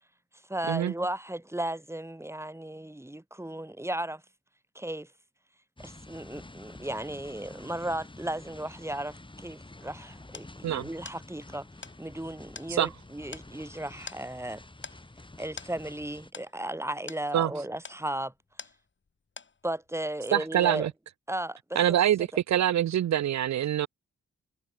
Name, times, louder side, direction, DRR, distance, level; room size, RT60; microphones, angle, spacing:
voice 1, 0.5-4.2 4.7-5.1 5.8-11.7 12.0-14.6 15.4-18.3 19.6-20.9 21.3-22.3, right 1 dB, 10° right, 2.3 m, -35 dB
sound 1, 5.8-16.3, left 2 dB, 15° left, 2.0 m, -49 dB
sound 2, 10.3-19.1 19.4-19.9, left 5 dB, 40° left, 1.6 m, -48 dB
voice 2, 20.3-20.9 21.8-23.9, right 11 dB, 65° right, 0.6 m, -25 dB
supercardioid pair, 50°, 29 cm